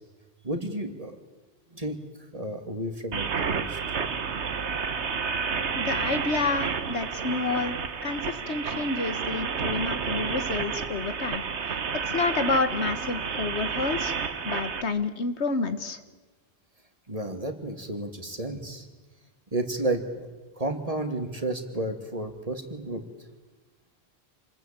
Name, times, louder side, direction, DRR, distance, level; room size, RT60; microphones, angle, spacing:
voice 1, 0.4-1.1 1.7-2.0 2.3-3.8 17.1-18.9 19.5-20.3 20.6-23.0, right 1 dB, 35° right, 6 dB, 2.6 m, -32 dB
sound 1, 3.1-14.8, right 6 dB, 85° right, 1.5 m, -30 dB
voice 2, 5.8-7.8 8.0-11.4 12.1-14.2 14.4-16.0, left 4 dB, 85° left, 11 dB, 1.8 m, -29 dB
27.5 x 20.5 x 9.0 m, 1.3 s
omnidirectional pair, 1.1 m